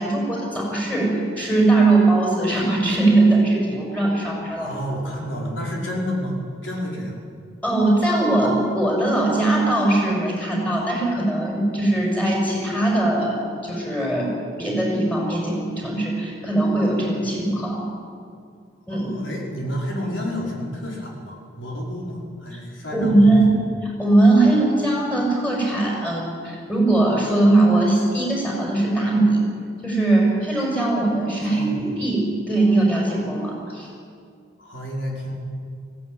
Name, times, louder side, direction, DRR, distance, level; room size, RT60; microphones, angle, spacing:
voice 1, 0.0-4.7 7.6-14.3 14.6-17.9 18.9-19.1 22.9-23.5 23.8-29.4 29.8-33.9, right 2 dB, 10° left, -1 dB, 6.2 m, -20 dB
voice 2, 4.6-6.4 6.6-7.1 18.9-23.4 31.4-31.9 34.6-35.3, equal, 80° left, -2 dB, 5.1 m, -30 dB
19.0 x 16.5 x 9.4 m, 2.3 s
head